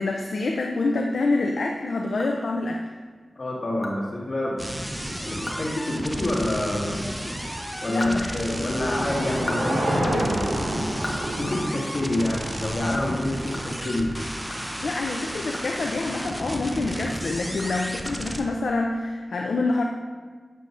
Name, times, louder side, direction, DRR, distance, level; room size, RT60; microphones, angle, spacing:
voice 1, 0.0-2.8 7.9-8.3 14.8-19.8, left 3 dB, 75° left, 1 dB, 0.4 m, -26 dB
sound 1, 2.2-2.9 3.3-3.4 3.8-4.0 4.3-4.4 4.8-4.9 5.3-5.7 6.0-6.1 7.6-8.9 9.2-12.2 12.5-12.6 13.0-16.6 16.9-18.6, left 1 dB, 25° left, 1.2 m, -39 dB
voice 2, 3.4-4.6 5.2-7.0 7.8-10.6 11.4-14.1, left 1 dB, 45° left, -6 dB, 1.7 m, -27 dB
sound 2, 4.6-18.4, equal, 5° right, 0.7 m, -33 dB
Car passing by / Engine, 7.3-13.7, right 1 dB, 85° right, 1.6 m, -30 dB
7.3 x 6.8 x 2.5 m, 1.5 s
cardioid pair, 50°, 0 cm